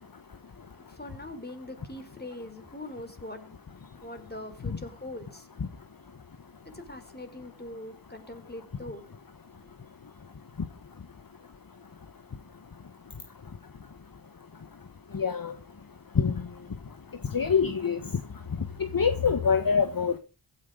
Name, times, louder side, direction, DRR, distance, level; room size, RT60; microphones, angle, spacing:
voice 1, 0.7-3.6 3.9-5.5 6.7-9.1, left 1 dB, 20° left, 4.3 m, -42 dB
voice 2, 15.1-15.5 16.2-16.3 17.3-18.0 18.9-20.2, left 6 dB, 50° left, 1.4 m, -24 dB
16.0 x 10.0 x 5.1 m
cardioid pair, 50°, 46 cm